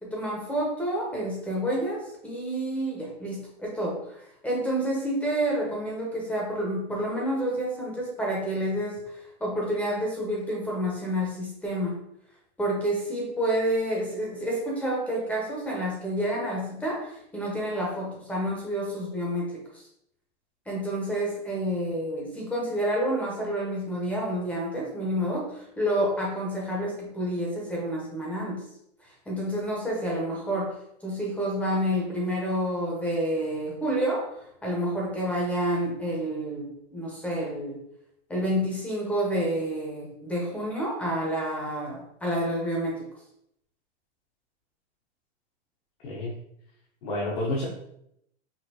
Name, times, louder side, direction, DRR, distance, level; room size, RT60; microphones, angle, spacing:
voice 1, 0.0-4.0 4.4-9.0 9.4-12.0 12.6-19.6 20.7-28.6 29.3-30.7 31.0-34.3 34.6-37.8 38.3-43.0, equal, 5° left, -3 dB, 0.8 m, -29 dB
voice 2, 47.0-47.7, left 1 dB, 45° left, -5 dB, 1.0 m, -29 dB
5.4 x 2.7 x 2.8 m, 0.75 s
supercardioid pair, 155°, 33 cm